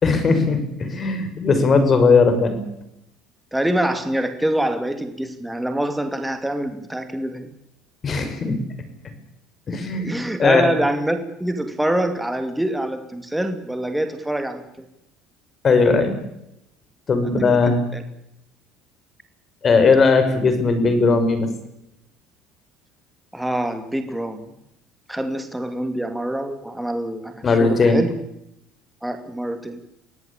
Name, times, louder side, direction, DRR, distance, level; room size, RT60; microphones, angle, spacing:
voice 1, 0.0-2.6 8.0-8.6 9.7-10.7 15.6-16.2 17.1-17.9 19.6-21.5 27.4-28.0, left 4 dB, 35° left, 9 dB, 6.0 m, -18 dB
voice 2, 3.5-7.5 10.0-14.9 17.4-18.0 23.3-24.5 25.1-28.1 29.0-29.8, right 1 dB, 5° right, 7 dB, 2.6 m, -25 dB
24.0 x 17.5 x 8.7 m, 0.82 s
supercardioid pair, 100°, 0 cm